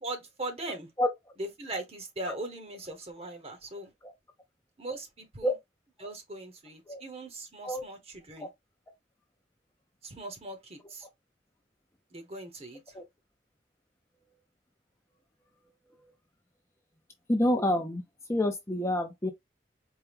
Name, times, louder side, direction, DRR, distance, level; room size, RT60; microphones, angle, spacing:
voice 1, 0.0-0.9 1.4-3.9 4.8-5.5 6.0-8.5 10.0-11.1 12.1-12.9, right 2 dB, 35° right, 1.1 m, -40 dB
voice 2, 17.3-18.0 18.3-19.3, left 1 dB, 15° left, 0.6 m, -27 dB
4.5 x 2.3 x 3.5 m
head